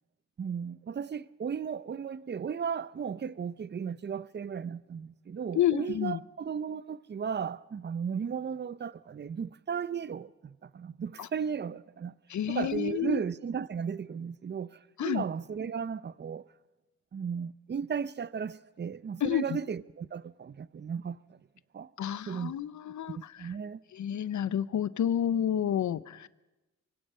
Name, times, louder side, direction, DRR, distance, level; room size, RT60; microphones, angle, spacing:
voice 1, 0.4-12.1 12.5-16.5 17.1-21.4 21.7-21.9 22.3-22.5 23.1-23.8, right 7 dB, 35° right, 0.6 m, -35 dB
voice 2, 5.5-6.2 11.2-11.3 12.3-13.2 15.0-15.2 19.2-19.6 22.0-23.2 23.9-26.3, left 10 dB, 70° left, 0.7 m, -29 dB
24.5 x 23.5 x 5.6 m
cardioid pair, 90°, 30 cm